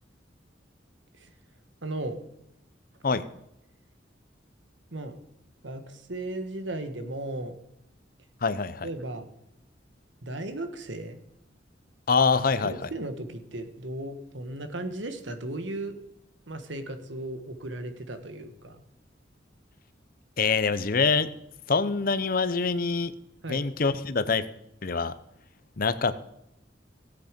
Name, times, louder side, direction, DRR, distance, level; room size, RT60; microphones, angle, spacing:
voice 1, 1.8-2.2 4.9-5.2 5.6-7.5 8.8-9.3 10.2-11.2 12.6-16.0 16.5-18.8 23.4-23.7, right 1 dB, 85° right, 8 dB, 1.5 m, -36 dB
voice 2, 8.4-8.9 12.1-12.9 20.4-21.3 21.7-23.1 23.5-24.4 24.8-25.1 25.8-26.2, left 4 dB, 50° left, 13 dB, 0.8 m, -25 dB
17.5 x 8.0 x 5.2 m, 0.82 s
head